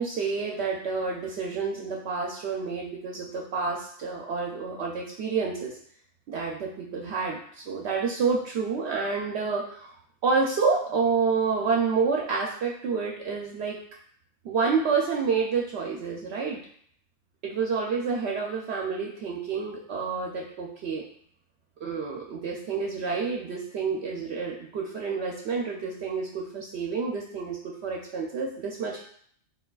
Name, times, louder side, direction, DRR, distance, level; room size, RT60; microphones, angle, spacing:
voice 1, 0.0-5.7 6.3-9.9 10.2-13.8 14.4-16.6 17.4-21.0 21.8-29.0, right 5 dB, 65° right, -1 dB, 0.8 m, -29 dB
4.5 x 3.9 x 2.3 m, 0.62 s
omnidirectional pair, 1.2 m